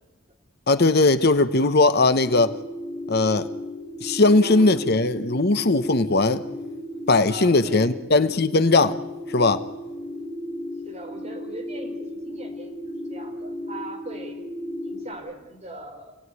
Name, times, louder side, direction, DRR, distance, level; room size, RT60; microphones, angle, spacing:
voice 1, 0.7-2.5 3.1-3.5 4.0-6.4 7.1-9.0 9.3-9.6, left 3 dB, 50° left, 1.0 m, -19 dB
sound 1, 2.2-15.1, left 1 dB, 10° left, 6.2 m, -35 dB
voice 2, 4.3-5.1 7.3-7.9 10.8-14.4 14.8-16.2, right 1 dB, 30° right, 4.9 m, -40 dB
27.5 x 18.0 x 9.7 m
head